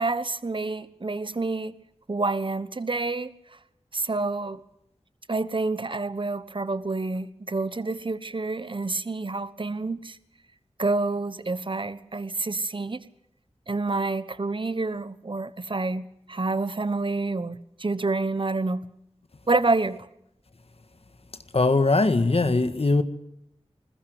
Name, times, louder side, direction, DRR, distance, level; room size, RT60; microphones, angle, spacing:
voice 1, 0.0-1.7 2.1-3.3 3.9-4.6 5.3-10.2 10.8-13.0 13.7-18.8 19.5-20.0, right 3 dB, 45° right, 1.2 m, -28 dB
voice 2, 21.5-23.0, left 3 dB, 60° left, 1.8 m, -20 dB
21.0 x 20.5 x 8.0 m
wide cardioid pair, 60°, 11 cm